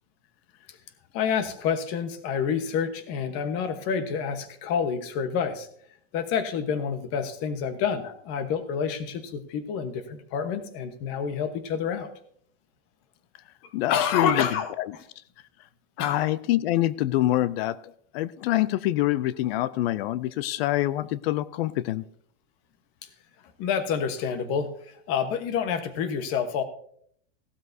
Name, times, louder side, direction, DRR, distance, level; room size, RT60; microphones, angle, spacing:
voice 1, 1.1-5.7 6.1-12.1 13.9-15.0 16.0-16.3 23.6-26.6, left 7 dB, 40° left, 1.2 m, -28 dB
voice 2, 13.7-14.5 14.8-14.9 16.0-17.8 18.1-22.0, left 15 dB, 55° left, 0.5 m, -25 dB
16.0 x 12.5 x 2.7 m
supercardioid pair, 160°, 36 cm